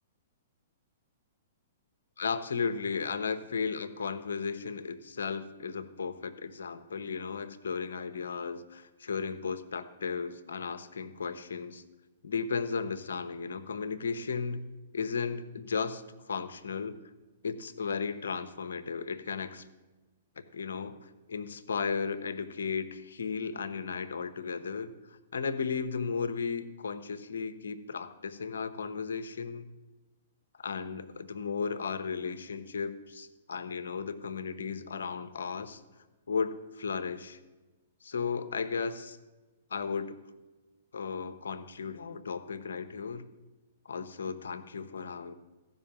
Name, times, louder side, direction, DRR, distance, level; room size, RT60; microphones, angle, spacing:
voice 1, 2.2-11.8 12.2-14.7 14.9-16.9 17.4-19.7 20.4-24.9 25.3-29.7 30.6-35.8 36.3-37.4 38.0-39.2 39.7-40.2 40.9-43.3 43.8-45.3, left 5 dB, 75° left, 11 dB, 0.8 m, -35 dB
14.5 x 5.5 x 7.1 m, 1.2 s
hypercardioid pair, 120°, 0 cm